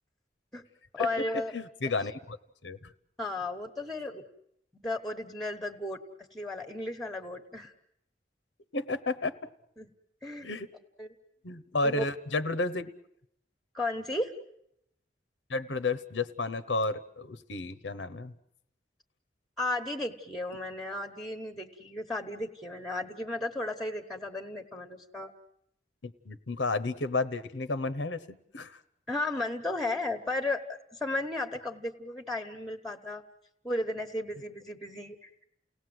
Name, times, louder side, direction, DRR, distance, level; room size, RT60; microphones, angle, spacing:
voice 1, 0.9-1.5 1.9-2.0 3.2-4.2 4.7-6.0 6.3-7.7 9.8-9.9 10.2-10.6 11.0-11.1 11.8-12.1 13.7-14.3 19.6-25.3 29.1-33.2 33.6-35.3, left 2 dB, ahead, 7 dB, 1.1 m, -34 dB
voice 2, 1.5-2.4 2.6-2.9 8.7-9.3 10.4-10.7 11.4-12.9 15.5-18.3 26.0-28.8, left 3 dB, 85° left, 14 dB, 1.0 m, -32 dB
29.5 x 18.0 x 7.8 m, 0.78 s
head